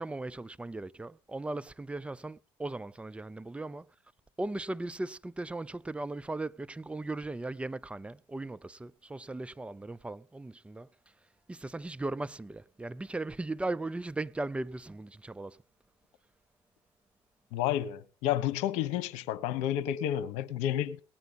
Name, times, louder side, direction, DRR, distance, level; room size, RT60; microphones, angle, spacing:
voice 1, 0.0-3.9 4.4-10.9 11.5-15.6, right 2 dB, 10° right, 0.5 m, -37 dB
voice 2, 17.5-21.0, left 11 dB, 85° left, 1.2 m, -31 dB
18.5 x 9.3 x 4.1 m
supercardioid pair, 95°, 11 cm